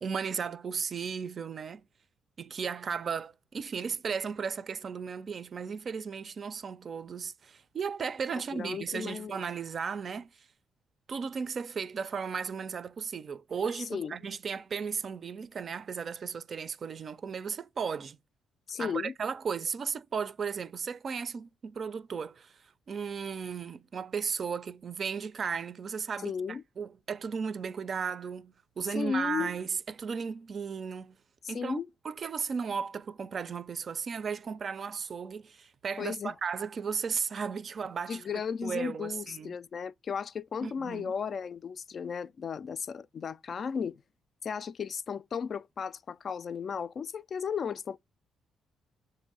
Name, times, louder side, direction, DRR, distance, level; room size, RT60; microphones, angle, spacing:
voice 1, 0.0-1.8 2.4-10.3 11.1-18.2 18.8-22.6 22.9-31.2 31.5-38.2 38.6-39.6 40.6-41.1, right 6 dB, 45° right, 0.5 m, -35 dB
voice 2, 8.5-9.4 13.9-14.1 18.7-19.1 26.2-26.6 28.9-29.5 31.4-31.9 36.0-36.3 38.1-44.0 44.4-48.0, left 6 dB, 50° left, 0.3 m, -35 dB
6.7 x 2.6 x 5.3 m
cardioid pair, 90°, 0 cm